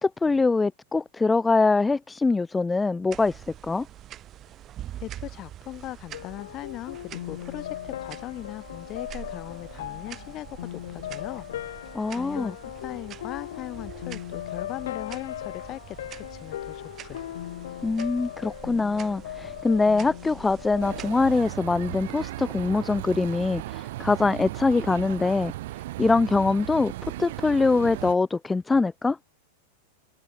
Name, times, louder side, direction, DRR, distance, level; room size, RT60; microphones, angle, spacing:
voice 1, 0.0-3.9 11.9-12.5 17.8-25.5 26.0-26.9 27.2-29.2, left 3 dB, 10° left, 0.4 m, -23 dB
sound 1, 3.1-21.5, right 12 dB, 30° right, 4.1 m, -45 dB
voice 2, 5.0-11.5 12.1-17.2, left 15 dB, 35° left, 4.0 m, -39 dB
sound 2, 6.1-22.2, left 12 dB, 80° left, 3.4 m, -38 dB
sound 3, 20.8-28.1, right 17 dB, 65° right, 2.2 m, -36 dB
supercardioid pair, 130°, 0 cm